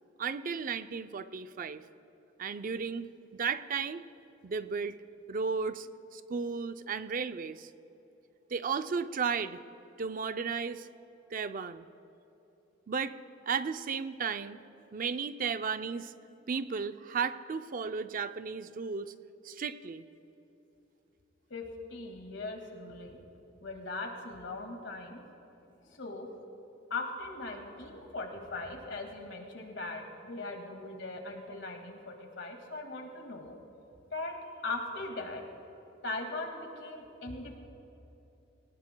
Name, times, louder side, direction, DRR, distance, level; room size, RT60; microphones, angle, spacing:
voice 1, 0.2-1.8 2.4-4.0 4.4-5.0 5.3-7.7 8.5-9.6 10.0-10.9 11.3-11.9 12.9-13.2 13.5-14.6 14.9-16.1 16.5-19.1 19.4-20.0, right 5 dB, 45° right, 11 dB, 0.5 m, -34 dB
voice 2, 21.9-23.2 23.6-25.2 25.8-26.3 26.9-33.5 34.1-34.4 34.6-35.4 36.0-37.6, left 3 dB, 70° left, 3 dB, 2.0 m, -39 dB
22.5 x 18.5 x 2.2 m, 3.0 s
head